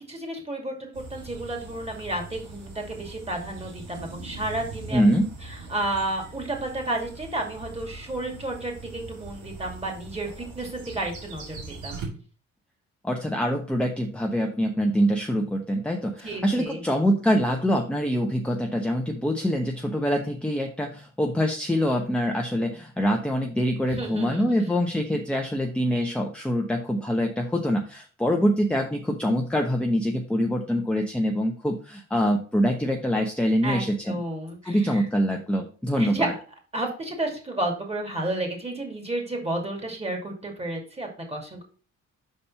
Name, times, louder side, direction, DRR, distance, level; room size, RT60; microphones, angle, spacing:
voice 1, 0.1-5.0 5.7-11.6 11.8-12.0 16.2-16.8 23.9-24.5 33.6-35.1 36.0-36.3 36.7-41.6, right 2 dB, 20° right, 2 dB, 2.5 m, -31 dB
sound 1, 0.9-12.1, right 3 dB, 85° right, 2.6 m, -41 dB
voice 2, 4.9-5.3 13.0-34.2 34.6-36.3, equal, 5° left, 1 dB, 0.9 m, -25 dB
5.3 x 4.3 x 5.5 m, 0.39 s
cardioid pair, 90°, 30 cm